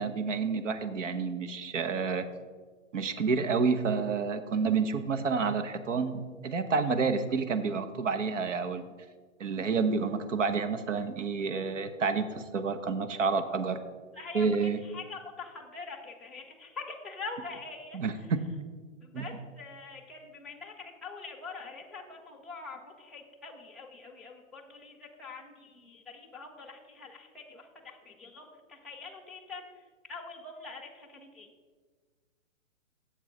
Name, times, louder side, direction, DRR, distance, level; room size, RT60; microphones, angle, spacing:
voice 1, 0.0-2.3 2.9-8.8 9.4-13.8 14.3-14.8 17.9-18.4 19.1-19.3, right 5 dB, 65° right, 10 dB, 0.9 m, -29 dB
voice 2, 14.1-18.3 19.0-31.5, left 4 dB, ahead, -4 dB, 0.3 m, -44 dB
7.6 x 7.1 x 5.4 m, 1.5 s
hypercardioid pair, 175°, 40 cm